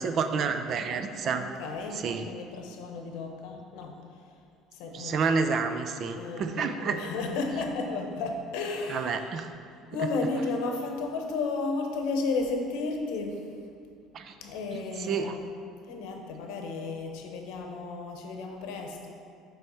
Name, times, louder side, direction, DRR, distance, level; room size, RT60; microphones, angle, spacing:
voice 1, 0.0-1.4 1.9-2.3 4.9-7.0 8.9-9.5 10.0-10.1 14.1-14.3 14.7-15.4, right 5 dB, 45° right, 8 dB, 0.4 m, -29 dB
voice 2, 1.3-3.9 4.7-5.2 6.2-9.2 9.9-13.5 14.4-15.4 15.9-19.1, left 3 dB, 85° left, 3 dB, 0.9 m, -33 dB
7.3 x 3.5 x 5.4 m, 2.4 s
cardioid pair, 135°, 0 cm